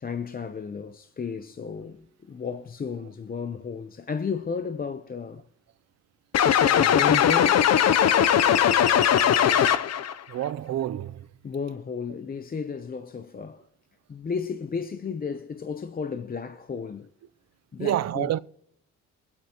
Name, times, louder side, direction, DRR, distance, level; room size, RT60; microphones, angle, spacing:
voice 1, 0.0-5.4 6.7-7.6 11.4-13.7 14.1-17.1 17.7-18.4, left 5 dB, 30° left, 0.7 m, -33 dB
sound 1, 6.3-10.1, left 9 dB, 60° left, 0.8 m, -19 dB
voice 2, 10.3-11.3 17.8-18.4, right 12 dB, 60° right, 0.6 m, -28 dB
24.0 x 8.3 x 3.0 m
cardioid pair, 90°, 30 cm